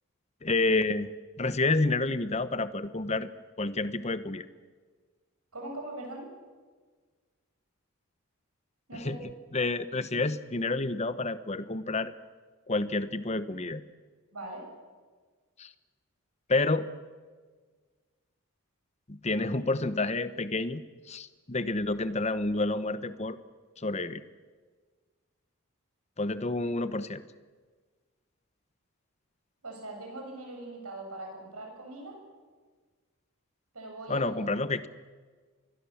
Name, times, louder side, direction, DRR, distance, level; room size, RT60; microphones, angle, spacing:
voice 1, 0.4-1.1 1.4-3.3 3.6-4.5 8.9-12.1 12.7-13.8 15.6-15.7 16.5-16.9 19.1-23.4 23.8-24.2 26.2-27.2 34.1-34.9, left 2 dB, 30° left, 13 dB, 1.0 m, -29 dB
voice 2, 5.5-6.3 8.9-9.2 14.3-14.7 29.6-32.2 33.7-34.4, right 2 dB, 85° right, 1 dB, 7.5 m, -41 dB
27.0 x 21.5 x 7.3 m, 1.5 s
head